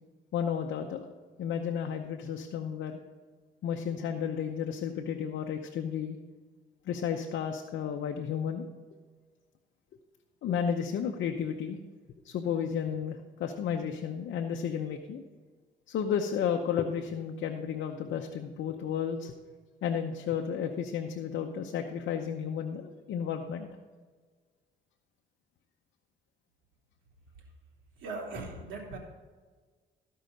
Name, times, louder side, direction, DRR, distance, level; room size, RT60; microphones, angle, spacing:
voice 1, 0.3-1.1 1.4-3.0 3.6-6.2 6.9-8.7 10.4-11.8 12.2-15.2 15.9-19.3 19.8-23.7, left 7 dB, 70° left, 4 dB, 0.8 m, -32 dB
voice 2, 28.0-29.0, right 3 dB, 75° right, -2 dB, 3.2 m, -39 dB
14.5 x 5.6 x 5.2 m, 1.5 s
cardioid pair, 90°, 20 cm